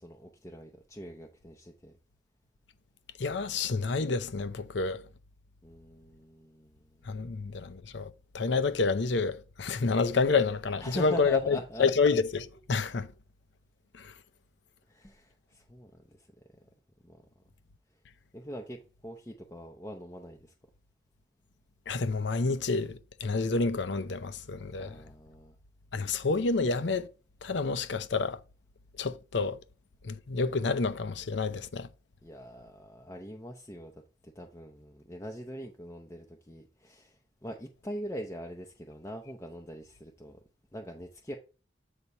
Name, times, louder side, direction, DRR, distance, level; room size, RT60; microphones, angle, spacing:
voice 1, 0.0-1.9 5.6-7.1 10.8-11.9 14.9-16.3 17.0-17.2 18.3-20.5 24.8-25.5 32.2-33.9 34.2-40.4 40.7-41.3, equal, 15° left, 0.6 m, -42 dB
voice 2, 3.2-5.0 7.1-13.1 13.9-14.1 21.9-25.0 25.9-27.1 27.4-28.4 29.0-29.6 30.0-31.9, left 4 dB, 70° left, 0.6 m, -29 dB
8.1 x 2.9 x 5.3 m
head